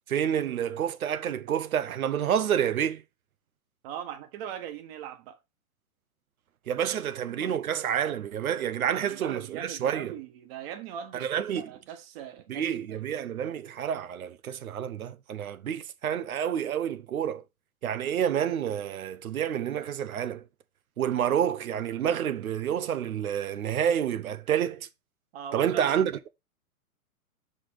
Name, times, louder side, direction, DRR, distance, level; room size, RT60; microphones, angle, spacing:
voice 1, 0.1-3.0 6.7-10.1 11.1-11.7 12.5-17.4 17.8-20.4 21.0-24.9 25.5-26.3, right 9 dB, 70° right, 1.0 m, -29 dB
voice 2, 3.8-5.4 6.9-7.0 7.3-7.6 8.9-13.0 25.3-25.9, right 9 dB, 40° right, 1.6 m, -40 dB
5.9 x 4.3 x 4.8 m
hypercardioid pair, 120°, 44 cm